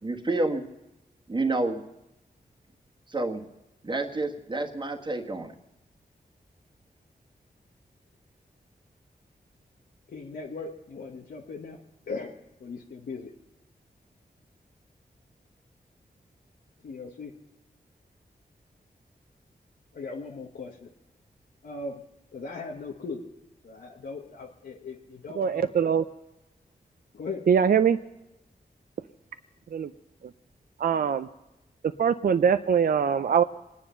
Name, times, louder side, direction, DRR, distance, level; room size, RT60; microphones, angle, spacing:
voice 1, 0.0-0.6 1.3-1.8 3.1-3.4 3.8-5.5, right 2 dB, 30° right, 1 dB, 1.5 m, -29 dB
voice 2, 10.1-11.8 12.1-12.3 12.6-13.3 16.8-17.3 19.9-20.9 21.6-22.0 22.3-23.2 23.6-25.7 27.1-27.4, left 3 dB, 85° left, -2 dB, 1.4 m, -38 dB
voice 3, 25.3-26.0 27.5-28.0 29.7-29.9 30.8-31.3 32.0-33.4, right 7 dB, 65° right, 10 dB, 0.5 m, -22 dB
25.5 x 9.9 x 5.6 m, 0.96 s
wide cardioid pair, 100°, 16 cm